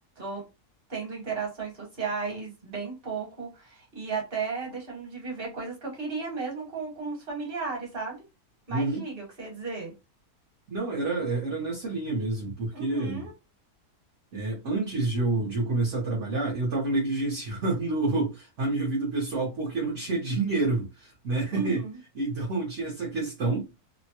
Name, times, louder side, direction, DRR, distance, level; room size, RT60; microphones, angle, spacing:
voice 1, 0.9-8.2 8.7-9.9 12.7-13.3 21.5-22.0, right 4 dB, 40° right, 1.5 m, -34 dB
voice 2, 8.7-9.0 10.7-13.3 14.3-21.8 22.1-23.7, right 3 dB, 55° right, 1.1 m, -28 dB
3.0 x 2.1 x 2.8 m
omnidirectional pair, 1.6 m